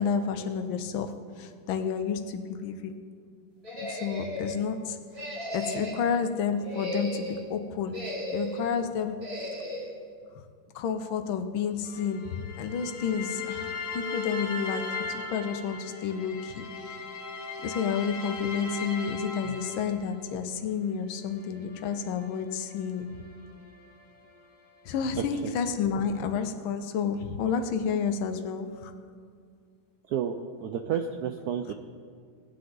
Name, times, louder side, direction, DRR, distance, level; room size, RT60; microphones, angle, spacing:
voice 1, 0.0-3.0 3.8-5.0 5.5-9.3 10.7-17.0 17.6-23.2 24.8-28.9 31.7-31.8, left 6 dB, 75° left, 7 dB, 1.5 m, -30 dB
sound 1, 3.6-4.6 5.1-6.1 6.6-7.4 7.9-8.7 9.2-9.9, equal, 30° right, 2.8 m, -35 dB
sound 2, 11.8-20.3 21.1-24.4, left 4 dB, 35° left, 0.8 m, -38 dB
voice 2, 30.6-31.7, right 8 dB, 80° right, 6 dB, 0.8 m, -30 dB
19.0 x 8.6 x 3.9 m, 2.1 s
omnidirectional pair, 2.2 m